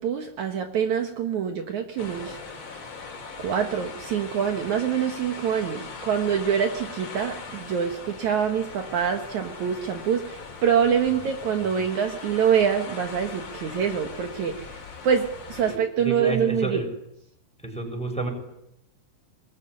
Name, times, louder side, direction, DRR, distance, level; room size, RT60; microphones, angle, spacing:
voice 1, 0.0-2.4 3.4-14.8 15.0-16.8, right 7 dB, 75° right, 4 dB, 1.7 m, -25 dB
sound 1, 2.0-15.8, left 5 dB, 45° left, 4.5 m, -40 dB
voice 2, 16.0-16.9 17.6-18.3, right 3 dB, ahead, 4 dB, 6.3 m, -30 dB
22.5 x 21.5 x 9.8 m, 0.81 s
omnidirectional pair, 5.8 m